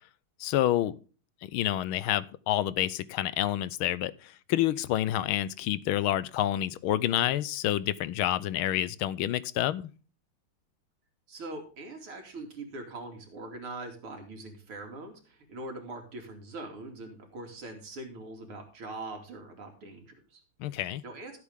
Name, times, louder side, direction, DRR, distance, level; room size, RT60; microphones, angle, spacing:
voice 1, 0.4-0.9 1.4-9.9 20.6-21.0, left 13 dB, 80° left, 1.5 m, -28 dB
voice 2, 11.3-20.4 20.7-21.4, right 2 dB, 85° right, 3.6 m, -42 dB
15.5 x 8.3 x 3.6 m
omnidirectional pair, 2.3 m